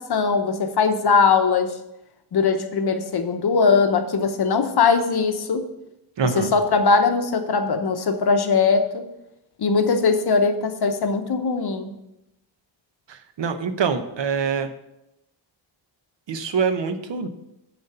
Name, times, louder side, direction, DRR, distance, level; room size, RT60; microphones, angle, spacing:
voice 1, 0.0-1.7 2.3-5.6 6.2-9.1 9.6-11.9, left 5 dB, 50° left, 7 dB, 0.8 m, -20 dB
voice 2, 6.2-6.5 13.1-14.7 16.3-17.3, right 6 dB, 60° right, 9 dB, 0.8 m, -25 dB
9.2 x 4.0 x 6.7 m, 0.87 s
wide cardioid pair, 175°, 49 cm